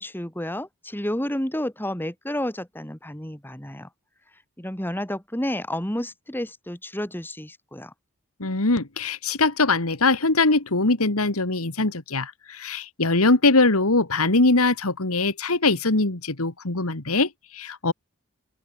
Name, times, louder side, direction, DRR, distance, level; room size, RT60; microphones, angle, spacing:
voice 1, 0.0-3.9 4.6-7.9, left 1 dB, 10° left, 2.4 m, -30 dB
voice 2, 8.4-17.9, left 3 dB, 75° left, 2.1 m, -22 dB
open air
head